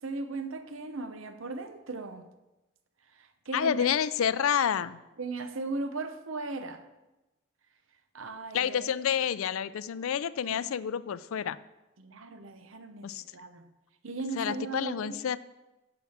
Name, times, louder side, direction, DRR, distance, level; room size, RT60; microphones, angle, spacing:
voice 1, 0.0-2.3 3.1-3.9 5.2-6.9 8.1-8.9 10.4-10.6 12.0-13.7 14.0-15.2, right 3 dB, 65° right, 0.8 m, -37 dB
voice 2, 3.5-5.0 8.5-11.6 13.0-13.2 14.4-15.4, left 8 dB, 75° left, 0.4 m, -29 dB
9.4 x 6.1 x 7.1 m
head